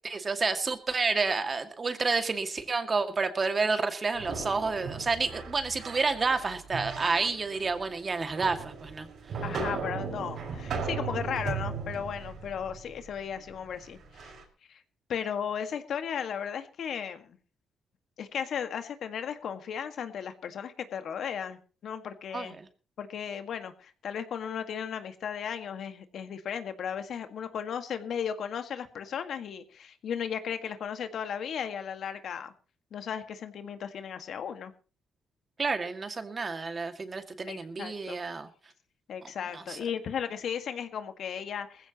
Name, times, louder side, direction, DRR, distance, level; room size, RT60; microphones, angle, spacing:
voice 1, 0.0-9.1 22.3-22.7 35.6-38.5 39.5-39.8, right 4 dB, 35° right, 7 dB, 2.2 m, -30 dB
sound 1, 4.1-14.4, right 5 dB, 65° right, 5.4 m, -38 dB
voice 2, 9.4-14.3 14.7-14.8 15.1-17.4 18.2-22.6 23.0-32.5 32.9-34.7 37.5-38.2 39.1-41.9, left 8 dB, 65° left, 8 dB, 1.8 m, -35 dB
20.0 x 15.5 x 3.0 m, 0.35 s
cardioid pair, 90°, 0 cm